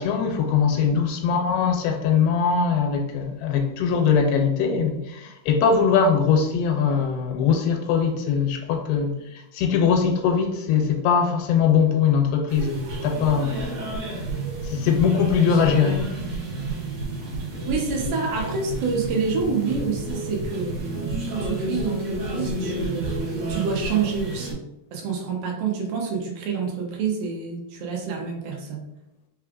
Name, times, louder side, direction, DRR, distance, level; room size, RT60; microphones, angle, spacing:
voice 1, 0.0-13.7 14.7-16.1, left 6 dB, 85° left, 2.6 m, -21 dB
sound 1, 12.5-24.5, right 2 dB, 55° right, 2.0 m, -30 dB
voice 2, 17.7-24.6 24.9-28.8, right 5 dB, 70° right, 2.4 m, -28 dB
5.9 x 3.1 x 2.4 m
omnidirectional pair, 4.5 m